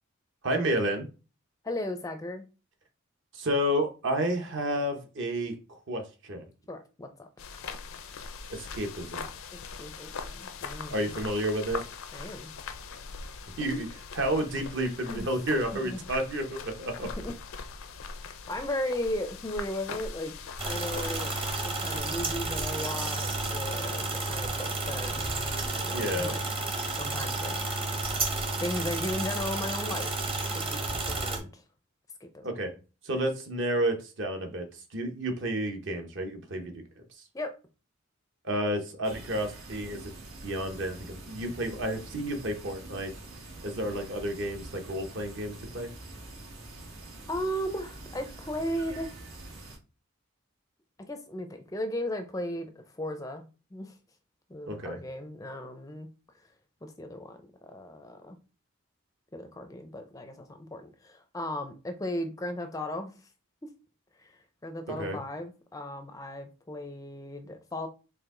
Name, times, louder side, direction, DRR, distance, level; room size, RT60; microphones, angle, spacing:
voice 1, 0.4-1.1 3.3-6.4 8.5-9.3 10.9-11.8 13.6-17.1 25.9-26.4 32.4-32.7 33.0-34.6 34.9-37.0 38.4-40.0 40.4-43.1 43.6-45.9 54.7-55.0 65.0-65.2, right 1 dB, 55° right, 1.0 m, -31 dB
voice 2, 1.6-2.4 6.7-7.3 9.5-11.1 12.1-12.5 15.1-15.6 15.8-16.0 17.2-17.3 18.5-20.3 20.6-21.3 21.8-26.4 26.9-28.1 28.6-30.1 30.5-31.6 32.2-32.5 37.3-37.5 47.3-49.2 51.1-53.5 53.7-54.0 54.5-56.1 56.8-58.4 59.3-63.3 64.2-67.9, left 1 dB, 15° left, 0.4 m, -36 dB
sound 1, 7.4-22.0, left 5 dB, 70° left, 0.5 m, -41 dB
sound 2, 20.6-31.4, right 3 dB, 25° right, 0.8 m, -31 dB
sound 3, 39.0-49.8, right 2 dB, 80° right, 1.3 m, -45 dB
4.7 x 2.7 x 3.7 m
head